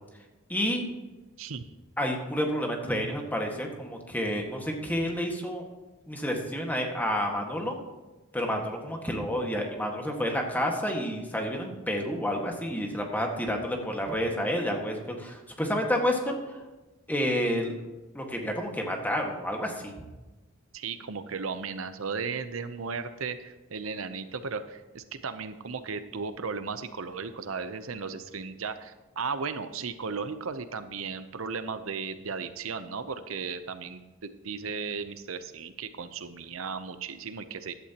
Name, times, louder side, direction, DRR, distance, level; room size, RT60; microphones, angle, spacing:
voice 1, 0.5-0.9 2.0-5.6 6.1-7.8 8.3-16.6 17.1-17.8 18.1-19.9, equal, 10° left, 1 dB, 1.7 m, -29 dB
voice 2, 20.7-37.7, right 5 dB, 85° right, 11 dB, 0.7 m, -35 dB
15.0 x 11.5 x 3.0 m, 1.1 s
head